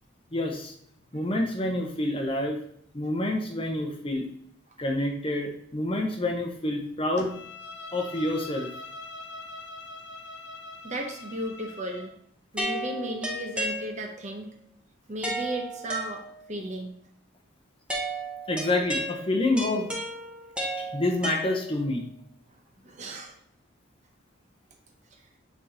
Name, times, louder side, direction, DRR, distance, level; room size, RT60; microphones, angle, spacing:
voice 1, 0.3-0.7 1.1-2.6 2.9-4.2 4.8-7.3 7.9-8.7 18.5-20.0 20.8-22.1, left 1 dB, 25° left, 3 dB, 0.8 m, -28 dB
Bowed string instrument, 7.2-12.2, left 2 dB, 55° left, 0.6 m, -42 dB
voice 2, 10.8-12.1 12.5-14.5 15.1-16.2 16.5-16.9 22.8-23.3, right 1 dB, 35° right, 4 dB, 0.8 m, -34 dB
sound 1, 12.6-14.3 15.2-16.6 17.9-22.0, right 1 dB, 5° right, 1.1 m, -34 dB
7.8 x 4.6 x 2.8 m, 0.68 s
head